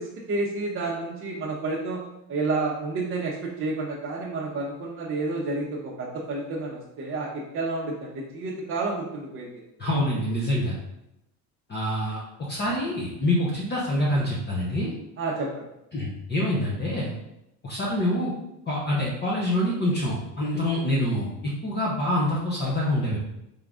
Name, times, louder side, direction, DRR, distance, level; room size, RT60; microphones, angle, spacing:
voice 1, 0.0-2.0 2.3-9.5 15.2-15.5, right 3 dB, 30° right, -5 dB, 0.7 m, -30 dB
voice 2, 9.8-10.7 11.7-14.9 15.9-17.1 17.6-18.3 18.7-23.2, left 1 dB, 25° left, -4 dB, 0.8 m, -26 dB
3.8 x 3.6 x 3.6 m, 0.87 s
cardioid pair, 130°, 42 cm